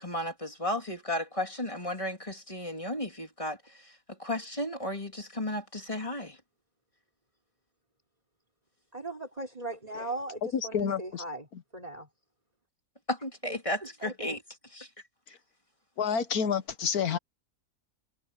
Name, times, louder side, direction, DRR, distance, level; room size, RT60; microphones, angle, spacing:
voice 1, 0.0-3.6 4.2-6.4 13.1-14.4 14.7-14.9, left 1 dB, 20° left, 3.3 m, -34 dB
voice 2, 8.9-11.5 11.7-12.1 13.4-13.6 14.0-14.4, right 2 dB, 25° right, 3.7 m, -38 dB
voice 3, 10.5-11.2 11.5-11.6 16.0-17.2, left 7 dB, 75° left, 1.6 m, -29 dB
omnidirectional pair, 1.6 m